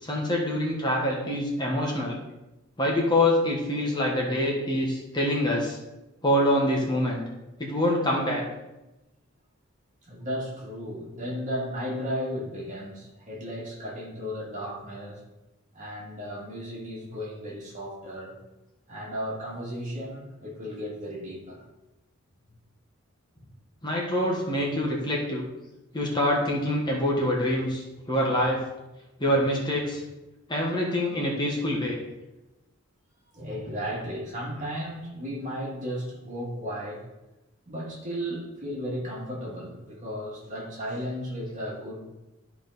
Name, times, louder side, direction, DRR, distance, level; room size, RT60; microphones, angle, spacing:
voice 1, 0.0-2.2 2.8-5.8 6.2-7.2 7.6-8.4 23.8-25.4 25.9-28.6 29.2-30.0 30.5-32.0, left 1 dB, 20° left, -2 dB, 1.4 m, -25 dB
voice 2, 10.1-15.2 15.7-18.4 18.9-21.7 33.3-37.1 37.7-42.0, equal, 35° right, -4 dB, 2.4 m, -34 dB
12.5 x 4.8 x 4.1 m, 1.0 s
head